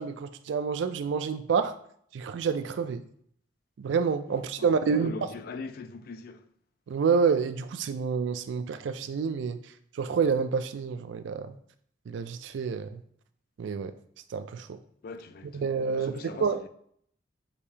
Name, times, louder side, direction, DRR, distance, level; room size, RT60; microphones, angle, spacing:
voice 1, 0.0-1.8 2.1-3.0 3.8-5.3 6.9-9.6 9.9-11.6 12.1-13.0 13.6-13.9 14.3-14.8 15.4-16.6, right 5 dB, 75° right, 0.3 m, -28 dB
voice 2, 4.6-6.5 15.0-16.5, left 4 dB, 50° left, 0.3 m, -41 dB
6.4 x 2.7 x 2.7 m
head